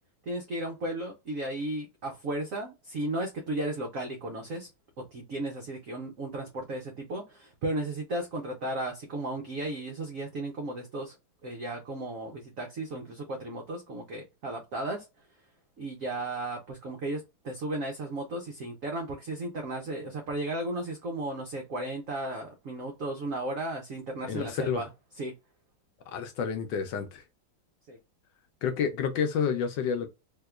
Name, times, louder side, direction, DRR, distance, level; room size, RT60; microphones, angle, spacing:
voice 1, 0.3-4.7 5.1-11.2 11.4-15.1 15.8-24.9 25.1-25.3 27.9-28.0, right 1 dB, 75° right, 0.7 m, -35 dB
voice 2, 24.3-24.8 26.1-27.2 28.6-30.1, left 7 dB, 75° left, 1.1 m, -29 dB
3.5 x 2.8 x 2.3 m
omnidirectional pair, 2.3 m